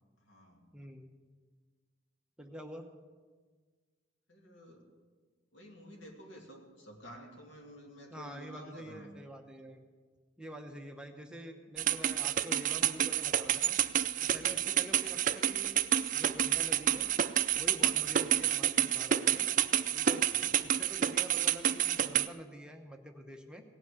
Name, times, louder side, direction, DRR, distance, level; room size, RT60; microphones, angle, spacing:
voice 1, 0.2-0.7 4.3-4.9 5.5-9.1 14.5-14.7 18.1-18.2 20.2-20.8, equal, 85° left, 1 dB, 2.4 m, -52 dB
voice 2, 0.7-1.1 2.4-2.9 8.1-9.8 10.4-13.8 14.2-15.9 16.1-17.1 17.5-19.5 19.9-23.6, right 1 dB, 5° right, 3 dB, 0.9 m, -47 dB
sound 1, 11.8-22.3, right 10 dB, 45° right, 0.4 m, -29 dB
17.5 x 6.2 x 9.4 m, 1.5 s
head